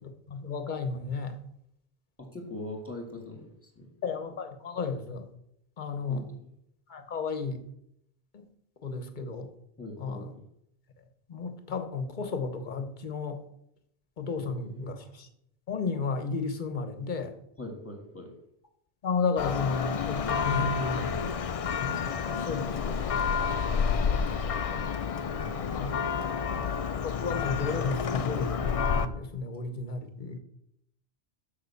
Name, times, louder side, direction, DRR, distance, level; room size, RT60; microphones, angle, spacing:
voice 1, 0.0-1.4 4.0-5.3 5.8-6.3 6.9-7.6 8.3-8.5 8.8-9.5 10.0-10.3 11.3-13.4 14.2-15.3 15.7-17.3 19.0-21.3 21.8-23.0 23.8-24.3 25.7-26.0 27.0-28.6 29.0-30.4, left 4 dB, 45° left, 8 dB, 1.1 m, -33 dB
voice 2, 2.2-3.9 6.1-6.5 9.8-10.3 14.4-15.0 17.6-18.3 25.3-26.7, left 1 dB, 10° left, 1 dB, 1.9 m, -42 dB
Church bell, 19.4-29.1, left 6 dB, 60° left, 0.3 m, -29 dB
6.6 x 5.7 x 6.9 m, 0.76 s
omnidirectional pair, 1.2 m